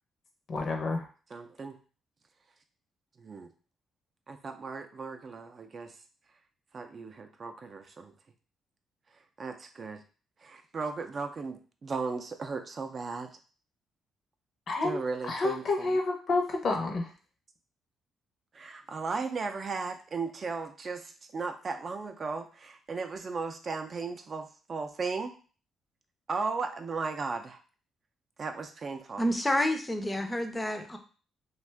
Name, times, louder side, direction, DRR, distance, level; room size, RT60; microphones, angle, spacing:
voice 1, 0.5-1.1 14.7-15.0 15.3-17.1, left 3 dB, 55° left, 3 dB, 0.7 m, -29 dB
voice 2, 1.3-1.8 3.2-3.5 4.3-5.9 6.7-8.1 9.4-10.0 10.4-13.3 14.8-16.0 18.5-25.3 26.3-27.6 28.4-29.2, right 4 dB, 40° right, 6 dB, 0.4 m, -36 dB
voice 3, 29.2-31.0, left 1 dB, 15° left, 5 dB, 0.5 m, -29 dB
2.5 x 2.3 x 3.3 m, 0.38 s
cardioid pair, 90°, 0 cm